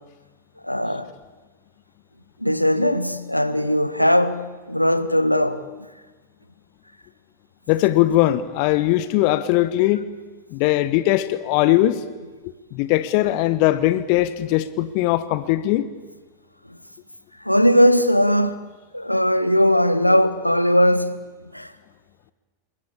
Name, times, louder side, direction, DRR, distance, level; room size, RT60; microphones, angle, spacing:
voice 1, 0.6-1.1 2.4-5.6 16.7-16.8 17.4-18.6 18.9-21.2 21.5-21.7, equal, 90° left, 1.5 m, -19 dB
voice 2, 7.7-10.1 10.5-12.0 12.7-15.9, left 15 dB, 45° left, 1.2 m, -20 dB
27.5 x 22.5 x 8.7 m
figure-of-eight pair, 90°, 0 cm